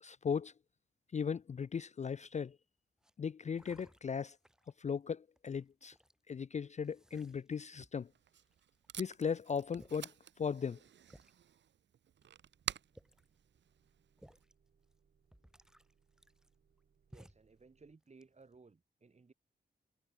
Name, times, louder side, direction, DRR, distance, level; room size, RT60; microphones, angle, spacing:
voice 1, 0.0-0.5 1.1-2.6 3.2-4.4 4.8-5.9 6.3-8.1 9.0-10.1 10.4-10.8, left 6 dB, 40° left, 0.4 m, -37 dB
sound 1, 2.1-2.5 3.0-3.1 3.5-4.8 5.4-6.2 6.8-8.1 8.5-9.0 9.5-9.6 9.7-10.1 10.7-10.8 11.1-11.3 12.2-12.3 12.8-13.4 14.2-14.5 14.9-15.0 15.3-16.8 17.1-17.5 18.0-18.6, equal, 5° right, 4.2 m, -61 dB
Packing tape duct tape, 7.9-14.4, right 9 dB, 85° right, 0.5 m, -49 dB
Motor vehicle (road) / Engine starting / Idling, 12.2-18.0, right 6 dB, 65° right, 3.7 m, -75 dB
voice 2, 17.1-19.3, right 4 dB, 40° right, 5.0 m, -60 dB
wide cardioid pair, 155°, 18 cm